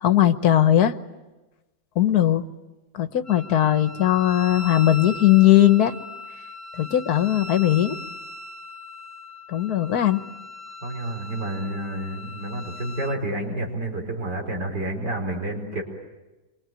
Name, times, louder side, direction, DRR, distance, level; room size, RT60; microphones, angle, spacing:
voice 1, 0.0-0.9 1.9-2.4 2.9-5.9 6.7-8.0 9.5-10.2, left 12 dB, 65° left, 10 dB, 1.6 m, -19 dB
Wind instrument woodwind instrument, 3.2-13.2, left 2 dB, 10° left, 1.2 m, -39 dB
voice 2, 10.8-15.8, right 1 dB, 90° right, 2 dB, 5.2 m, -29 dB
27.0 x 24.0 x 9.2 m, 1.1 s
omnidirectional pair, 1.8 m